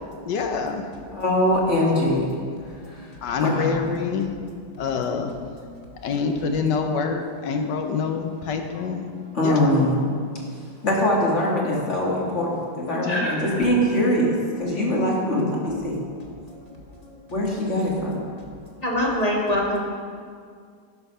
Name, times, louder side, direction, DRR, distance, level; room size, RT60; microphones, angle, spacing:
voice 1, 0.2-1.0 3.2-4.3 4.8-5.3 6.0-9.1 9.4-9.7, left 5 dB, 75° left, 5 dB, 1.4 m, -26 dB
voice 2, 1.1-2.4 2.9-3.1 3.4-3.8 9.3-10.0 10.8-16.0 17.3-18.2, left 1 dB, 40° left, -3 dB, 2.0 m, -22 dB
voice 3, 13.1-13.6 18.8-19.8, left 1 dB, 25° left, -3 dB, 1.5 m, -24 dB
11.0 x 6.0 x 5.4 m, 2.1 s
omnidirectional pair, 1.9 m